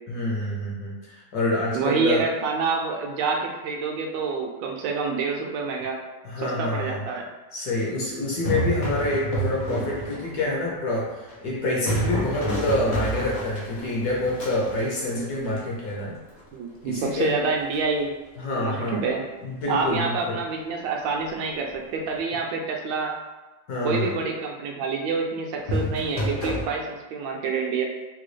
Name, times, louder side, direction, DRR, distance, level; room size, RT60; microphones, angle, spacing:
voice 1, 0.1-2.2 6.2-7.0 7.5-16.2 16.8-17.3 18.4-19.0 19.4-20.4 23.7-24.2, left 2 dB, 65° left, -4 dB, 1.1 m, -27 dB
voice 2, 1.7-6.0 6.4-7.3 16.5-18.1 18.5-19.2 19.7-23.2 23.8-27.8, right 4 dB, 80° right, 1 dB, 1.2 m, -27 dB
sound 1, 8.3-10.5 11.0-16.0 17.7-18.0 25.7-26.6, equal, 85° left, 0.4 m, -29 dB
3.9 x 2.3 x 3.1 m, 1.2 s
omnidirectional pair, 2.1 m